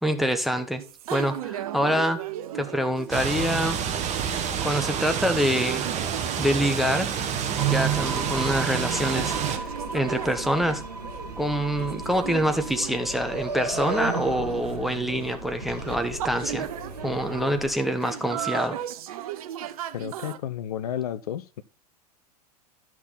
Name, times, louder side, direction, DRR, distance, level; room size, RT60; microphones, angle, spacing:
voice 1, 0.0-0.8 1.1-2.2 2.5-3.8 4.6-5.9 6.4-7.1 7.7-10.8 11.4-16.7 17.0-18.8, equal, ahead, 1.1 m, -26 dB
sound 1, 0.8-20.4, right 11 dB, 65° right, 0.9 m, -37 dB
sound 2, 3.1-9.6, right 9 dB, 35° right, 1.6 m, -28 dB
sound 3, 7.6-17.7, right 2 dB, 85° right, 2.5 m, -35 dB
voice 2, 19.9-21.6, left 10 dB, 70° left, 0.6 m, -32 dB
12.0 x 6.0 x 4.0 m
figure-of-eight pair, 90°, 20 cm